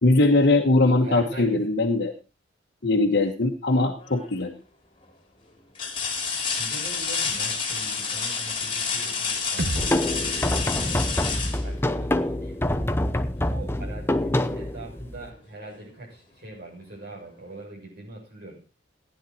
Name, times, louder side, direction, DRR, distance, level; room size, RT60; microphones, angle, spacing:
voice 1, 0.0-2.1 2.8-4.5, left 2 dB, 60° left, 1 dB, 1.3 m, -21 dB
voice 2, 1.0-1.7 6.6-12.8 13.5-18.6, right 2 dB, 60° right, -2 dB, 6.9 m, -42 dB
sound 1, 4.0-4.5 5.0-5.1 5.7-12.4 14.2-14.3 14.8-15.8 17.2-17.3, left 5 dB, 30° left, 3.0 m, -30 dB
sound 2, 9.6-13.5, right 1 dB, 80° right, 1.5 m, -36 dB
sound 3, 9.7-15.3, left 1 dB, 15° left, 0.8 m, -26 dB
15.5 x 10.0 x 4.3 m, 0.32 s
head